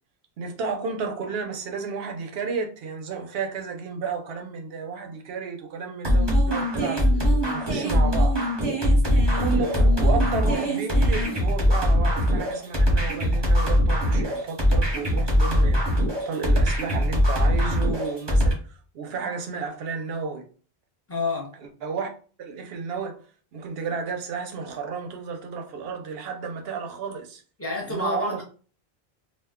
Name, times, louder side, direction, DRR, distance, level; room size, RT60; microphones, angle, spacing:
voice 1, 0.4-8.4 9.4-20.4 21.6-22.1 22.4-23.2 23.5-27.4 27.9-28.4, right 5 dB, 70° right, 0.8 m, -32 dB
sound 1, 6.0-18.5, equal, 25° right, 0.9 m, -21 dB
voice 2, 21.1-21.5 27.6-28.4, left 2 dB, 15° left, 0.8 m, -28 dB
2.3 x 2.2 x 3.5 m
omnidirectional pair, 1.1 m